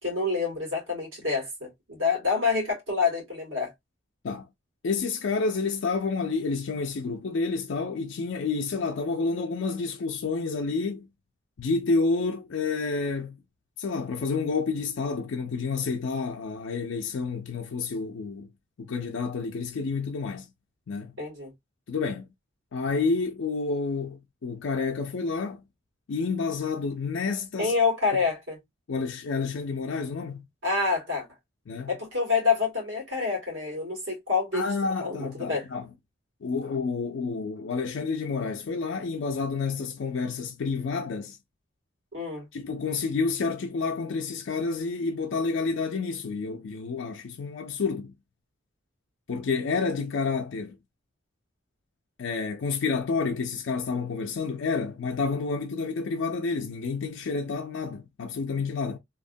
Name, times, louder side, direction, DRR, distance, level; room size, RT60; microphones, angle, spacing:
voice 1, 0.0-3.7 21.2-21.5 27.6-28.6 30.6-31.3 31.9-34.7 35.0-35.7 42.1-42.5, left 4 dB, 85° right, 1.7 m, -27 dB
voice 2, 4.8-11.1 11.6-13.4 13.8-18.5 18.8-20.5 20.9-21.1 21.9-22.3 22.7-25.6 26.1-27.7 28.1-28.2 28.9-30.4 31.7-31.9 34.5-35.9 36.4-41.4 42.5-48.1 49.3-50.8 52.2-59.0, left 4 dB, 80° left, 0.4 m, -29 dB
2.9 x 2.1 x 2.6 m
head